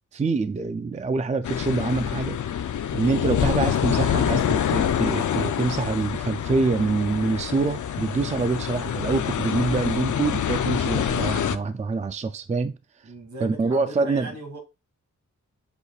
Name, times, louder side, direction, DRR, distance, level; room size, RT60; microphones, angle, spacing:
voice 1, 0.1-2.4 2.9-12.7 13.4-14.3, right 3 dB, 25° right, 0.4 m, -25 dB
sound 1, 1.4-11.6, left 9 dB, 75° left, 0.6 m, -26 dB
voice 2, 13.0-14.6, right 2 dB, 70° right, 2.3 m, -38 dB
8.2 x 6.4 x 2.4 m
wide cardioid pair, 165°, 30 cm